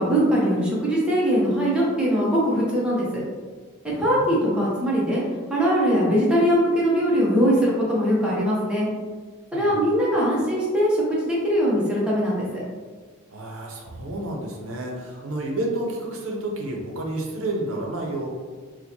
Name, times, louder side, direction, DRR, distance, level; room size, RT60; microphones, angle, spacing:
voice 1, 0.0-3.2 3.8-5.2 5.5-8.9 9.5-12.6, equal, 5° right, -7 dB, 0.7 m, -21 dB
voice 2, 4.0-4.7 9.5-9.9 13.3-18.3, right 1 dB, 75° right, -1 dB, 0.6 m, -30 dB
4.4 x 2.1 x 2.7 m, 1.5 s
head